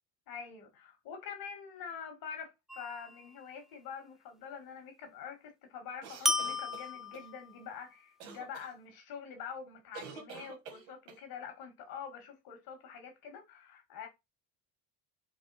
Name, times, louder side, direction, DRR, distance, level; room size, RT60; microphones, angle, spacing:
voice 1, 0.3-14.1, left 7 dB, 70° left, 1.9 m, -45 dB
sound 1, 2.7-3.4 6.3-7.7, left 2 dB, ahead, 0.3 m, -34 dB
sound 2, 6.0-7.3 8.2-8.7 9.9-11.2, right 6 dB, 85° right, 1.5 m, -48 dB
4.8 x 2.1 x 4.1 m
cardioid pair, 105°, 37 cm